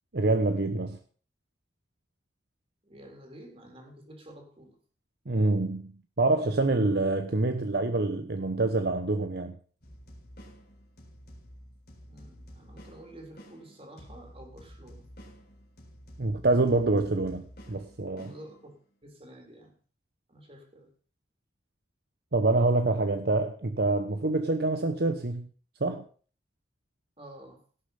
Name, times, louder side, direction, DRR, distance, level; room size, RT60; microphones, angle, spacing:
voice 1, 0.1-1.0 5.3-9.6 16.2-18.3 22.3-25.5 25.8-26.1, right 2 dB, 60° right, 7 dB, 0.9 m, -26 dB
voice 2, 2.8-4.8 12.1-15.1 18.2-18.7 19.0-19.7 20.3-20.9 27.2-27.6, right 1 dB, 35° right, 3 dB, 3.5 m, -49 dB
sound 1, 9.8-18.9, equal, 60° left, 4.1 m, -51 dB
17.0 x 6.9 x 5.6 m, 0.41 s
head